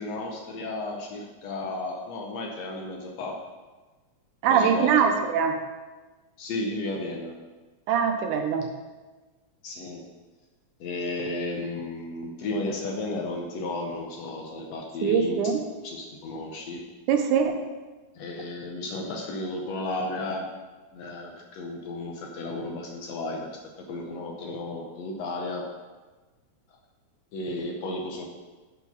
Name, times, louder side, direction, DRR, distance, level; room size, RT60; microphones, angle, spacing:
voice 1, 0.0-3.4 4.5-5.1 6.4-7.3 9.6-10.0 10.8-15.5 15.8-16.8 18.2-20.5 20.9-23.6 23.9-25.6 27.3-28.2, left 2 dB, 70° left, 1 dB, 1.8 m, -33 dB
voice 2, 4.4-5.6 7.9-8.7 15.0-15.6 17.1-17.5, right 7 dB, 85° right, 5 dB, 2.2 m, -22 dB
9.0 x 4.5 x 5.5 m, 1.3 s
omnidirectional pair, 3.6 m